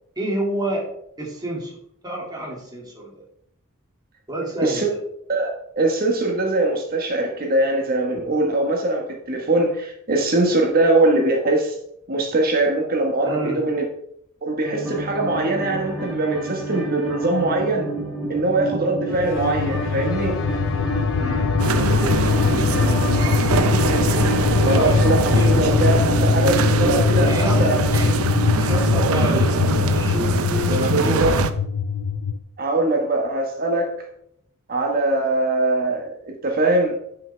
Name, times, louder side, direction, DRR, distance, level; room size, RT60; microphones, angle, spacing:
voice 1, 0.2-0.9 1.2-1.7 2.0-3.1 4.3-5.0 13.2-13.6 21.2-23.9 24.7-24.9 25.3-25.5 27.3-28.2 28.6-30.2 30.7-31.3, right 1 dB, 20° right, -3 dB, 2.3 m, -29 dB
voice 2, 5.3-11.7 12.1-13.8 14.4-17.9 18.3-20.4 24.7-28.0 30.9-31.3 32.6-33.9 34.7-36.9, right 2 dB, 45° right, 2 dB, 1.4 m, -22 dB
sound 1, 14.6-30.7, right 1 dB, ahead, 2.5 m, -30 dB
sound 2, 19.1-32.4, left 4 dB, 60° left, 0.5 m, -21 dB
sound 3, 21.6-31.5, right 5 dB, 90° right, 0.6 m, -24 dB
11.0 x 5.8 x 3.4 m, 0.71 s
head